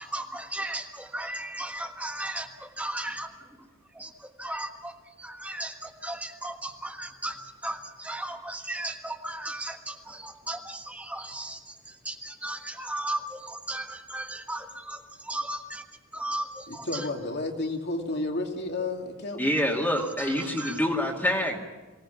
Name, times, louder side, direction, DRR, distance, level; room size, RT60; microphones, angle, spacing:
voice 1, 0.0-3.3 4.0-4.1 4.4-4.9 5.2-7.4 7.6-11.6 12.0-15.0 15.2-15.8 16.1-17.0 20.2-20.8, right 1 dB, 5° right, 4 dB, 1.4 m, -35 dB
voice 2, 16.7-19.4, left 2 dB, 55° left, 2 dB, 2.8 m, -31 dB
voice 3, 19.4-21.6, left 1 dB, 10° left, -1 dB, 2.3 m, -26 dB
24.0 x 18.0 x 7.2 m, 1.2 s
head